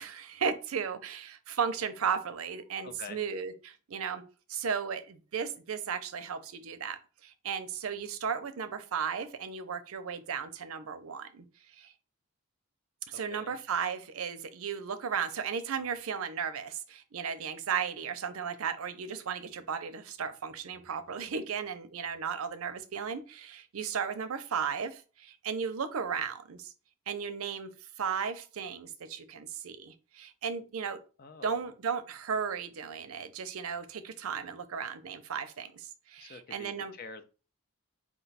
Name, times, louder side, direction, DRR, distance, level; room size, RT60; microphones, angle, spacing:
voice 1, 0.0-4.2 4.5-11.4 11.7-11.9 13.1-26.7 27.1-27.7 28.0-31.0 31.4-36.9, right 6 dB, 75° right, 11 dB, 0.5 m, -35 dB
voice 2, 2.8-3.2 13.1-13.5 31.2-31.5 36.2-37.2, left 4 dB, 45° left, 9 dB, 0.4 m, -46 dB
4.6 x 2.2 x 4.0 m, 0.34 s
head